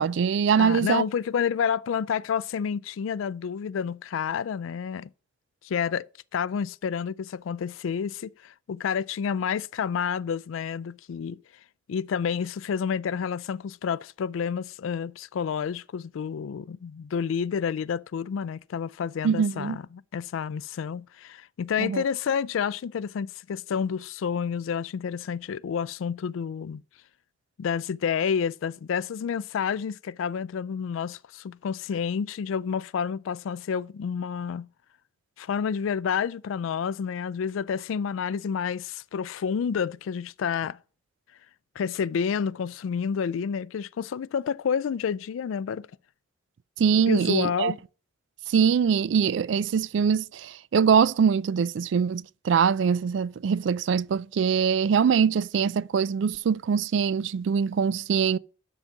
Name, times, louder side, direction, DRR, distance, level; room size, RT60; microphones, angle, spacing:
voice 1, 0.0-1.0 19.2-19.8 21.8-22.0 46.8-47.7 48.5-58.4, right 6 dB, 70° right, 0.3 m, -23 dB
voice 2, 0.6-5.1 5.6-6.1 6.3-11.4 11.9-26.8 27.6-34.7 35.4-40.8 41.8-45.9 47.1-47.8, left 7 dB, 85° left, 0.3 m, -29 dB
11.5 x 3.9 x 5.8 m
head